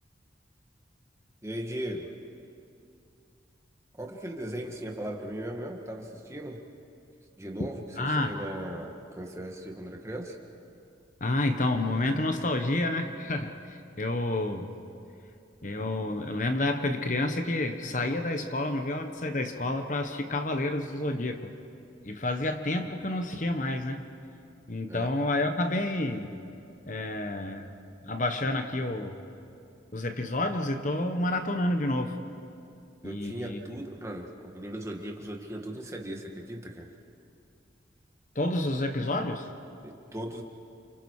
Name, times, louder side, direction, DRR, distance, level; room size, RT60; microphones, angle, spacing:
voice 1, 1.4-2.1 4.0-6.6 7.4-10.4 24.9-25.1 33.0-36.9 39.8-40.4, right 1 dB, 15° right, 1 dB, 2.0 m, -38 dB
voice 2, 8.0-8.3 11.2-14.7 15.6-21.5 22.0-24.0 24.7-26.3 26.9-27.7 28.0-29.2 29.9-32.2 33.0-33.6 38.3-39.5, left 2 dB, 40° left, 6 dB, 1.2 m, -29 dB
30.0 x 28.5 x 4.9 m, 2.6 s
head